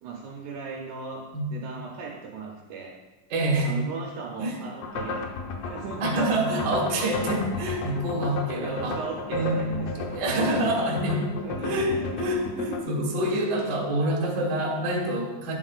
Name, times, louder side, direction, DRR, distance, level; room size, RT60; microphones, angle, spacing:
voice 1, 0.0-1.2 1.5-3.0 3.6-6.1 6.6-7.1 8.6-11.0 11.4-12.1, right 5 dB, 75° right, 0 dB, 1.9 m, -37 dB
voice 2, 3.3-3.8 4.4-4.5 6.0-9.0 9.3-9.7 10.1-11.3 11.6-11.9 12.2-15.5, right 1 dB, 50° right, -2 dB, 1.4 m, -26 dB
sound 1, 4.8-12.8, left 3 dB, 85° left, 1.5 m, -33 dB
10.0 x 7.5 x 2.4 m, 1.1 s
omnidirectional pair, 3.9 m